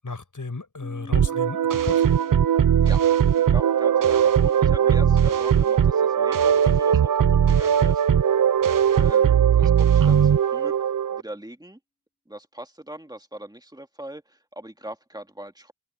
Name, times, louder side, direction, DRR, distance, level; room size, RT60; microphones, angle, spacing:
voice 1, 0.0-2.1, left 3 dB, 75° left, 7.8 m, -34 dB
Piano, 0.8-8.0, left 1 dB, 25° left, 6.8 m, -48 dB
sound 1, 1.1-11.2, right 8 dB, 80° right, 0.6 m, -19 dB
voice 2, 3.4-8.0 8.9-10.7 11.1-11.8 12.3-15.7, right 1 dB, 10° right, 2.4 m, -40 dB
wide cardioid pair, 60°, 32 cm